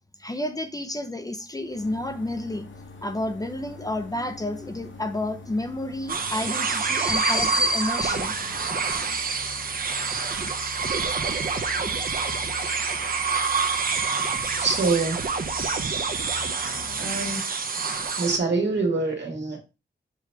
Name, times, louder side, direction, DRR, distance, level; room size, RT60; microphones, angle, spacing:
voice 1, 0.2-2.7 3.0-8.3 8.7-8.8, left 1 dB, 20° left, 0.6 m, -29 dB
sound 1, 1.6-17.4, left 4 dB, 75° left, 1.0 m, -44 dB
sound 2, 6.1-18.4, right 5 dB, 50° right, 0.8 m, -27 dB
voice 2, 14.6-15.2 17.0-17.6 18.2-19.6, right 3 dB, 65° right, 1.8 m, -25 dB
6.9 x 3.0 x 4.6 m
wide cardioid pair, 140°, 20 cm